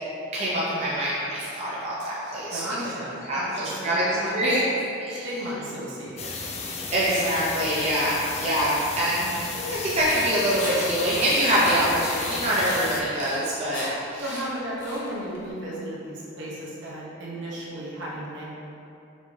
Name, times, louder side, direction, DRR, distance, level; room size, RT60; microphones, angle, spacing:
voice 1, 0.3-2.6 3.3-3.4 3.8-4.0 4.3-4.7 5.0-5.3 6.9-9.3 9.5-14.2, equal, 30° right, -7 dB, 0.5 m, -24 dB
voice 2, 2.5-4.6 5.1-6.4 14.2-18.5, right 1 dB, 70° right, -6 dB, 1.0 m, -34 dB
sound 1, 6.2-13.0, left 4 dB, 30° left, 0.4 m, -34 dB
sound 2, 9.7-15.5, left 1 dB, 70° left, 0.8 m, -37 dB
5.3 x 2.6 x 3.2 m, 2.7 s
head